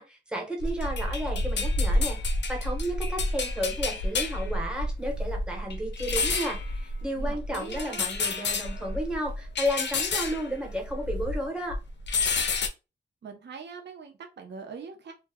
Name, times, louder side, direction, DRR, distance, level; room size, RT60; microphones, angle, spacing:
voice 1, 0.0-11.8, equal, 5° right, 0 dB, 0.7 m, -33 dB
sound 1, 0.6-11.4 11.7-12.7, left 2 dB, 70° left, 0.4 m, -29 dB
voice 2, 7.2-8.1 13.2-15.1, right 5 dB, 65° right, 3 dB, 0.5 m, -42 dB
2.1 x 2.0 x 3.4 m, 0.29 s
wide cardioid pair, 150°, 19 cm